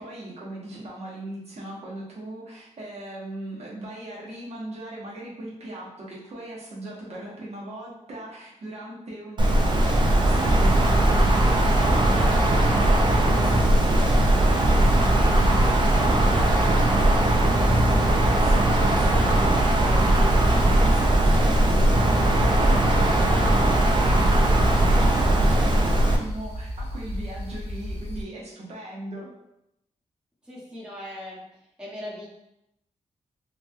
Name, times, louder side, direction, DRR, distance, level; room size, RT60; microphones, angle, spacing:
voice 1, 0.0-29.3, right 1 dB, 65° right, -5 dB, 0.9 m, -38 dB
Wind, 9.4-26.2, right 1 dB, 40° right, 0.4 m, -19 dB
sound 1, 10.7-28.2, left 1 dB, 50° left, 1.0 m, -34 dB
voice 2, 30.4-31.4 31.8-32.3, left 1 dB, 5° right, -6 dB, 0.8 m, -38 dB
3.1 x 2.2 x 2.6 m, 0.82 s
wide cardioid pair, 120°, 12 cm